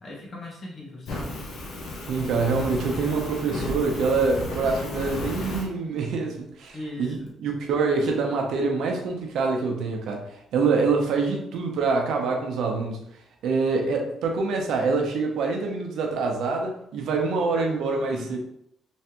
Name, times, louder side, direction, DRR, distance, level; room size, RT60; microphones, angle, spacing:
voice 1, 0.0-1.5 6.7-7.3 17.5-18.3, left 2 dB, 45° left, -3 dB, 1.3 m, -39 dB
Fire, 1.1-5.7, left 2 dB, 70° left, 0.8 m, -33 dB
voice 2, 2.1-7.1 7.4-13.0 13.4-18.4, right 4 dB, 80° right, 2 dB, 0.7 m, -25 dB
3.3 x 3.1 x 2.9 m, 0.73 s
cardioid pair, 90°, 0 cm